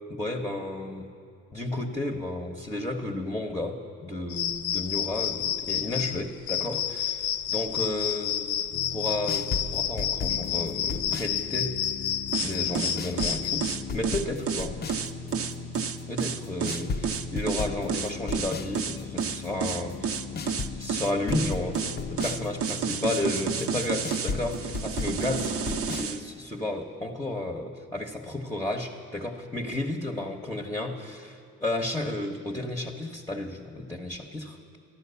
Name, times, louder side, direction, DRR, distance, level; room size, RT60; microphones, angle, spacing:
voice 1, 0.1-1.1 1.5-8.5 8.9-11.7 12.4-14.7 16.1-21.8 22.1-25.5 26.0-34.8, left 2 dB, 10° left, 1 dB, 1.1 m, -32 dB
sound 1, 4.3-13.8, left 10 dB, 80° left, 0.5 m, -30 dB
sound 2, 8.7-26.0, left 4 dB, 35° left, 0.6 m, -36 dB
sound 3, 12.3-26.2, right 7 dB, 50° right, 0.8 m, -30 dB
13.5 x 12.0 x 6.9 m, 2.5 s
cardioid pair, 90°, 30 cm